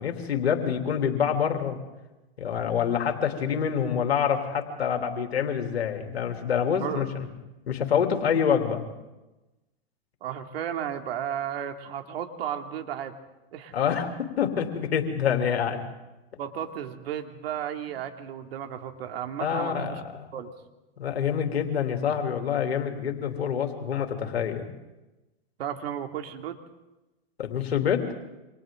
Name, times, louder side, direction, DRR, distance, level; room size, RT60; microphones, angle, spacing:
voice 1, 0.0-1.8 2.4-7.3 7.7-8.8 13.7-15.8 19.4-20.3 21.0-24.6 27.4-28.1, left 7 dB, 85° left, 4 dB, 3.1 m, -26 dB
voice 2, 10.2-13.1 13.5-13.7 16.4-20.0 20.3-20.5 25.6-26.6, right 9 dB, 70° right, 5 dB, 2.6 m, -34 dB
29.0 x 26.0 x 3.8 m, 1.1 s
hypercardioid pair, 120°, 31 cm